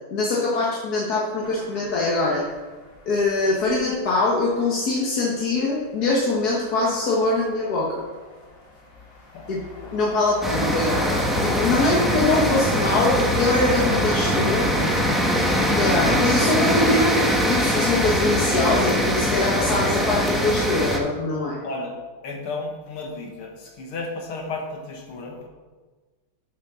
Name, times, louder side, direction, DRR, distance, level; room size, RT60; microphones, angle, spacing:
voice 1, 0.1-2.5 3.0-8.0 9.5-9.6 9.9-14.7 15.8-17.2 17.5-21.6, left 2 dB, 50° left, -4 dB, 1.6 m, -23 dB
sound 1, 1.4-20.9, left 3 dB, 70° left, 2.8 m, -38 dB
voice 2, 9.8-10.3 11.7-11.9 14.8-15.8 21.6-21.9 22.2-25.5, left 3 dB, 90° left, 1 dB, 2.3 m, -34 dB
sound 2, 10.4-21.0, equal, ahead, 0.7 m, -22 dB
7.4 x 7.3 x 6.1 m, 1.3 s
omnidirectional pair, 2.3 m